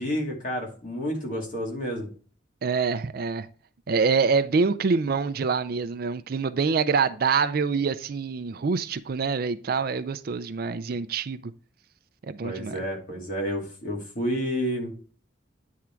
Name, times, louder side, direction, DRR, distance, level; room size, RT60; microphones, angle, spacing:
voice 1, 0.0-2.1 12.4-14.9, equal, 45° left, 2.3 m, -30 dB
voice 2, 2.6-3.5 3.9-11.4 12.3-12.8, right 5 dB, 50° right, 0.4 m, -25 dB
9.4 x 3.7 x 4.3 m
head